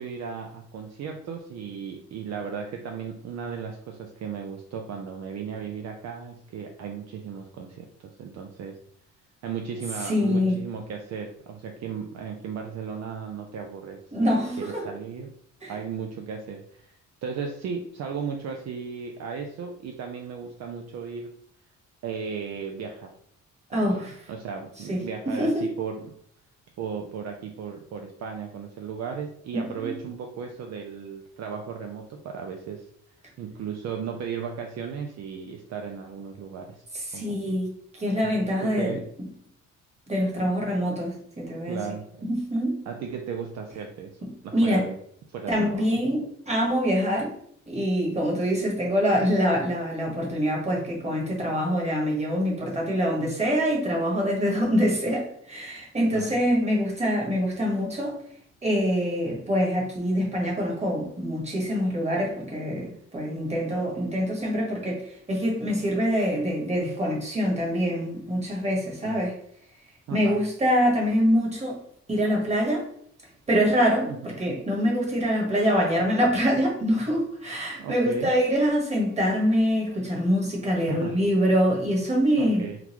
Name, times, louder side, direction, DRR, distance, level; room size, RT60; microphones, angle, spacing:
voice 1, 0.0-8.8 9.4-15.3 15.7-17.0 17.2-21.3 22.0-23.1 23.7-24.0 24.3-26.1 26.8-32.9 33.4-36.8 37.1-37.6 38.3-39.1 41.7-42.1 42.9-44.1 44.4-45.0 45.3-45.9 56.1-56.4 69.0-69.2 70.1-70.4 74.1-74.2 77.8-78.3 80.9-81.3 82.4-82.8, right 6 dB, 60° right, 3 dB, 0.5 m, -35 dB
voice 2, 10.1-10.6 14.1-14.9 15.6-15.7 23.7-24.1 24.9-25.0 25.3-25.7 29.5-29.9 36.9-37.7 38.0-39.0 40.1-41.8 42.3-42.8 44.5-44.8 45.5-47.3 47.7-58.2 58.6-69.3 70.1-71.8 72.1-72.8 73.5-82.7, equal, 20° right, -2 dB, 1.4 m, -25 dB
3.8 x 2.3 x 3.0 m, 0.65 s
cardioid pair, 90°, 30 cm